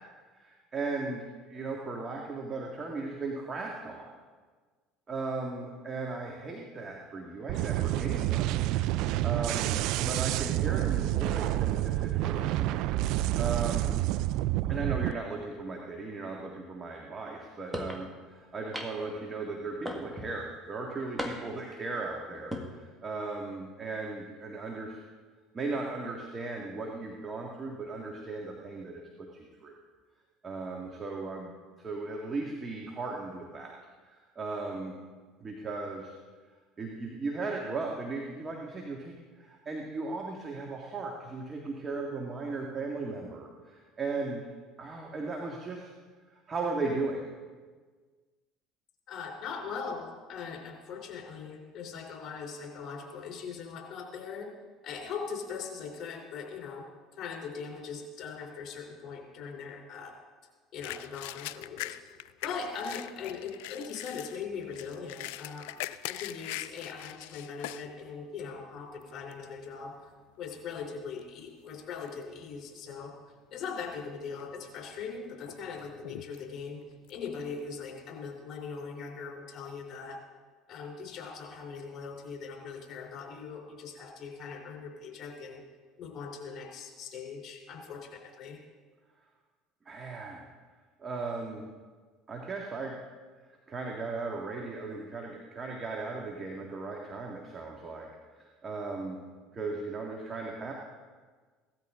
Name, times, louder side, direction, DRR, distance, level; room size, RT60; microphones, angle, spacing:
voice 1, 0.3-4.1 5.1-8.6 9.0-13.9 14.7-25.0 25.5-29.7 30.4-33.7 34.0-34.9 35.4-36.1 36.8-44.5 44.8-45.9 46.3-47.3 89.9-90.4 91.0-91.7 92.3-92.9 93.7-99.2 99.5-100.7, right 3 dB, 30° right, 0 dB, 2.0 m, -37 dB
sound 1, 7.5-15.1, right 15 dB, 70° right, 0.4 m, -28 dB
sound 2, 17.7-18.0 18.7-19.2 19.9-20.4 21.2-21.7 22.4-22.7, left 1 dB, 5° right, 1.8 m, -36 dB
voice 2, 49.1-54.5 54.8-56.9 57.2-60.1 60.7-62.0 62.4-69.9 70.4-73.1 73.5-76.8 77.1-80.2 80.7-85.6 86.0-88.6, left 5 dB, 55° left, 2 dB, 3.5 m, -40 dB
sound 3, 60.8-67.9 68.4-68.5 69.0-69.4 70.1-70.3 70.6-71.8 72.1-72.6 73.0-73.1 73.9-74.5 74.9-78.0, left 16 dB, 80° left, 0.4 m, -42 dB
17.0 x 13.0 x 3.8 m, 1.4 s
supercardioid pair, 85°, 0 cm